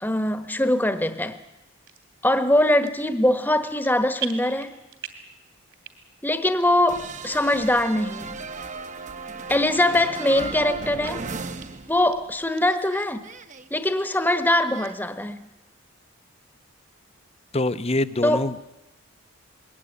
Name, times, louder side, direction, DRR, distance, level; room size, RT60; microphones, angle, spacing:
voice 1, 0.0-1.4 2.2-4.7 6.2-8.4 9.5-11.2 11.9-13.2 13.7-15.5 18.2-18.4, left 1 dB, 10° left, 1.2 m, -22 dB
sound 1, 1.8-2.0 2.7-3.1 3.4-3.9 4.2-5.3 5.7-6.2 6.6-6.7 7.3-7.4 8.1-8.2 8.9-9.0 9.4-9.5 10.0-10.6 11.0-11.1 11.6-11.7 12.0-12.6 13.0-13.1 13.5-13.6 13.9-14.4 14.8-14.9, right 10 dB, 60° right, 2.8 m, -39 dB
sound 2, 6.9-12.3 12.6-14.9, right 4 dB, 35° right, 1.0 m, -36 dB
voice 2, 17.5-18.6, left 2 dB, 30° left, 0.8 m, -24 dB
21.0 x 18.0 x 9.8 m
head